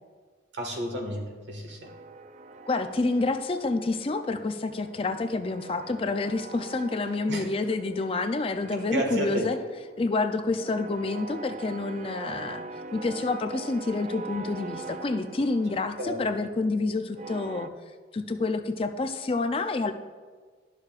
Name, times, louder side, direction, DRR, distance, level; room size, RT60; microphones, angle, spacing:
voice 1, 0.5-1.9 7.3-7.5 8.9-9.5 16.0-16.2, equal, 80° right, 1 dB, 1.5 m, -31 dB
sound 1, 1.8-4.4 4.6-8.3 8.6-17.7, right 3 dB, 40° right, 0.3 m, -43 dB
voice 2, 2.7-9.6 10.0-17.7 18.1-19.9, left 3 dB, 30° left, 8 dB, 0.4 m, -28 dB
12.0 x 6.6 x 2.4 m, 1.5 s
head